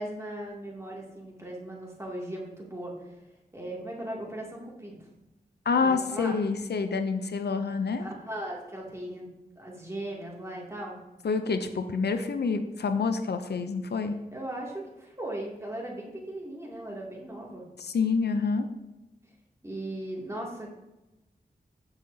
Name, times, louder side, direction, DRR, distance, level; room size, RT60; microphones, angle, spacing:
voice 1, 0.0-2.9 3.5-5.1 5.8-6.4 8.0-9.3 9.6-11.0 14.3-17.6 19.6-20.7, right 1 dB, 15° right, -3 dB, 2.5 m, -38 dB
voice 2, 5.7-8.0 11.2-14.2 17.8-18.7, left 4 dB, 85° left, 8 dB, 0.6 m, -27 dB
14.0 x 5.7 x 2.8 m, 1.0 s
wide cardioid pair, 65°, 17 cm